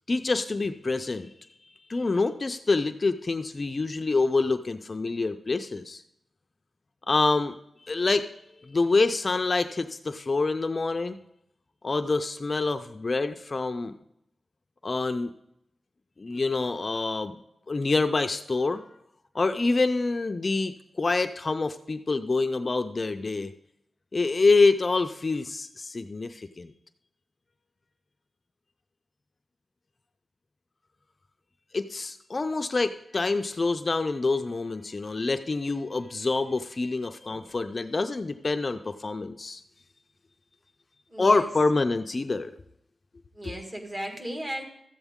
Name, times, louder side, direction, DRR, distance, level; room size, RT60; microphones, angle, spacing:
voice 1, 0.1-1.3 1.9-6.0 7.1-7.5 7.8-8.3 8.6-11.2 11.8-13.9 14.8-15.3 16.2-17.3 17.7-18.8 19.3-23.5 24.1-26.7 31.7-39.6 41.2-42.5 43.4-43.5, left 3 dB, 40° left, 8 dB, 0.4 m, -26 dB
voice 2, 37.2-37.5 41.1-41.5 43.3-44.6, right 1 dB, 25° right, 2 dB, 1.7 m, -36 dB
13.5 x 8.0 x 3.6 m, 0.79 s
wide cardioid pair, 100°, 0 cm